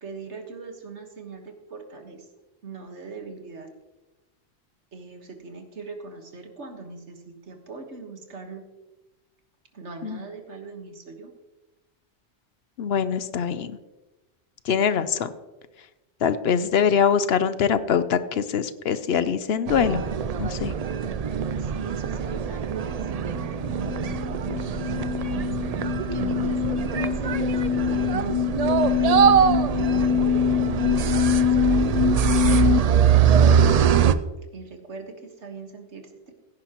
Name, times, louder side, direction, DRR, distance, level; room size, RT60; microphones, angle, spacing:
voice 1, 0.0-2.3 2.6-3.7 4.9-8.6 9.7-11.3 21.0-23.5 24.6-25.2 26.1-30.7 31.5-33.3 34.5-36.3, right 4 dB, 75° right, 4 dB, 1.8 m, -41 dB
voice 2, 12.8-13.8 14.6-15.3 16.2-20.0 20.4-20.7, left 7 dB, 65° left, 13 dB, 0.9 m, -23 dB
sound 1, 19.7-34.1, right 7 dB, 55° right, 0.4 m, -23 dB
sound 2, 23.3-32.8, left 8 dB, 45° left, 0.3 m, -24 dB
16.0 x 10.0 x 3.0 m, 1.1 s
omnidirectional pair, 1.2 m